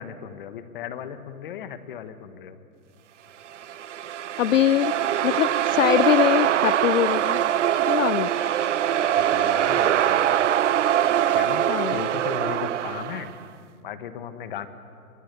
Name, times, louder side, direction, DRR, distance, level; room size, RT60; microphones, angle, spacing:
voice 1, 0.0-2.6 9.1-10.5 11.3-13.3 13.8-14.7, left 8 dB, 35° left, 11 dB, 1.5 m, -36 dB
sound 1, 3.5-13.4, right 10 dB, 50° right, 0.7 m, -23 dB
voice 2, 4.4-4.9 5.2-7.4 7.9-8.3 11.7-11.9, left 12 dB, 60° left, 18 dB, 0.5 m, -22 dB
28.5 x 23.5 x 7.0 m, 2.5 s
hypercardioid pair, 160°, 45 cm